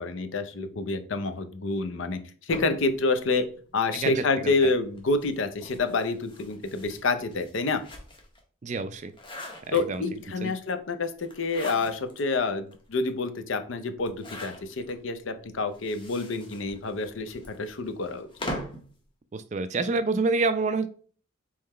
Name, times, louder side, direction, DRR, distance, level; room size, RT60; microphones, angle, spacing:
voice 1, 0.0-3.5 3.7-7.8 9.7-18.5, left 3 dB, 70° left, 9 dB, 0.6 m, -28 dB
sound 1, 2.5-4.1 4.9-8.4 8.8-10.2 11.2-12.2 12.7-12.8 13.0-13.1 14.0-14.9 15.7-18.9, left 1 dB, 25° left, 0.9 m, -41 dB
voice 2, 4.0-4.5 8.6-9.1 9.7-10.0 10.4-10.5 19.3-20.9, right 3 dB, 35° right, 11 dB, 0.3 m, -27 dB
3.9 x 3.1 x 4.2 m, 0.43 s
head